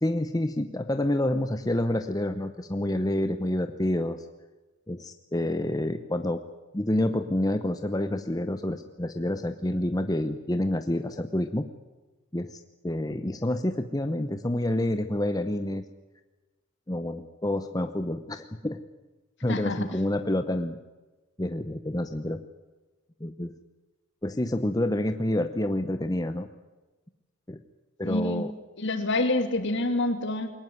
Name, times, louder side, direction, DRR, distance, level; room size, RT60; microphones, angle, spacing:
voice 1, 0.0-4.3 4.9-6.4 6.7-11.7 12.3-15.8 16.9-18.8 19.4-20.8 21.4-22.4 23.2-23.5 24.2-26.5 27.5-27.6 28.0-28.5, left 1 dB, 15° left, 8 dB, 0.8 m, -28 dB
voice 2, 19.5-19.9 28.0-28.4 28.8-30.5, left 2 dB, 55° left, 7 dB, 2.8 m, -27 dB
22.5 x 19.0 x 9.4 m, 1.2 s
head